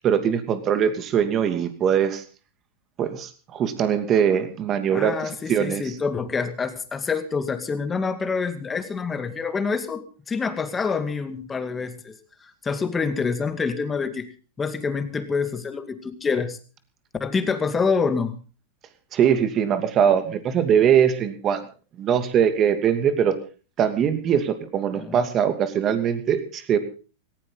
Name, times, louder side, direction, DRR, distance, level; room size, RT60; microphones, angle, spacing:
voice 1, 0.0-2.2 3.0-5.8 19.1-21.6 22.0-23.4 23.8-26.8, right 8 dB, 35° right, 9 dB, 2.7 m, -21 dB
voice 2, 4.9-12.2 12.6-14.3 14.6-16.6 17.2-18.4 24.9-25.3, left 5 dB, 15° left, 9 dB, 2.2 m, -26 dB
18.0 x 16.0 x 4.1 m, 0.36 s
hypercardioid pair, 125°, 0 cm